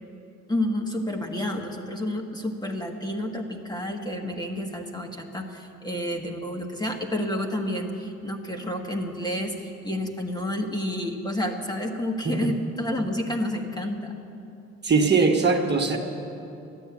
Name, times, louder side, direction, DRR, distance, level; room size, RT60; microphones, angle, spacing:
voice 1, 0.5-14.1, left 1 dB, 15° left, 2 dB, 1.5 m, -30 dB
voice 2, 14.8-16.0, right 4 dB, 35° right, 1 dB, 1.4 m, -21 dB
13.5 x 10.5 x 8.4 m, 2.7 s
cardioid pair, 90°, 30 cm